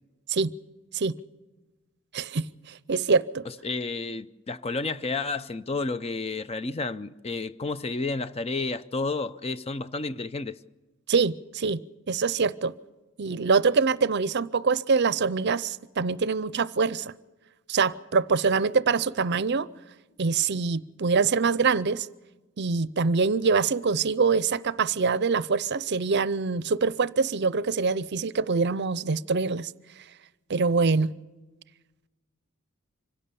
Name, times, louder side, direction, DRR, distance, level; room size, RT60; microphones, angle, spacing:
voice 1, 2.1-2.5 2.9-3.4 11.1-11.8 12.1-12.7 13.2-17.1 17.7-19.7 20.2-22.1 22.6-29.7 30.5-31.1, right 4 dB, 55° right, 0.6 m, -24 dB
voice 2, 3.6-10.6, left 3 dB, 30° left, 0.6 m, -31 dB
25.5 x 17.0 x 6.9 m
head